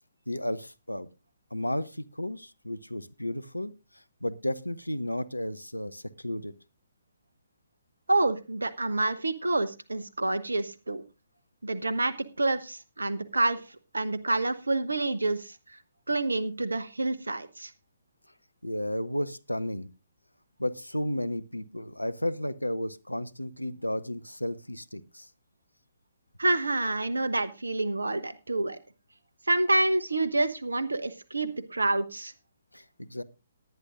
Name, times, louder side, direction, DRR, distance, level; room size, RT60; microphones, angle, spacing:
voice 1, 0.3-1.1 1.5-6.5 18.6-19.9 20.6-25.3 32.7-33.2, left 1 dB, 85° left, 16 dB, 0.7 m, -33 dB
voice 2, 8.1-11.0 11.6-13.6 13.9-15.6 16.1-17.7 26.4-28.8 29.5-32.3, right 2 dB, 75° right, 15 dB, 1.0 m, -28 dB
18.5 x 10.0 x 2.5 m, 0.28 s
figure-of-eight pair, 130°, 0 cm